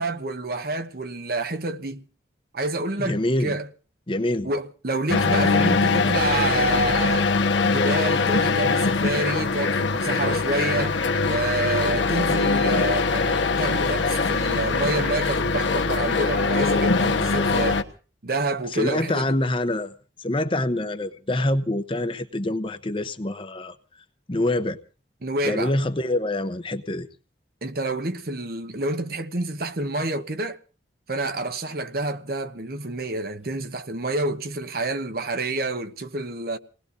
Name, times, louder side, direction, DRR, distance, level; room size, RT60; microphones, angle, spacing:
voice 1, 0.0-2.1 2.5-3.7 4.4-7.3 7.6-11.0 11.3-17.9 18.2-19.3 25.2-25.7 27.6-30.6 31.1-36.6, right 2 dB, 55° right, 1.0 m, -28 dB
voice 2, 3.0-3.6 4.1-4.5 18.7-19.9 20.2-23.8 24.3-24.8 25.4-27.1, left 1 dB, 30° left, 0.8 m, -25 dB
sound 1, 5.1-17.8, left 4 dB, 85° left, 1.2 m, -22 dB
28.5 x 19.0 x 2.7 m
head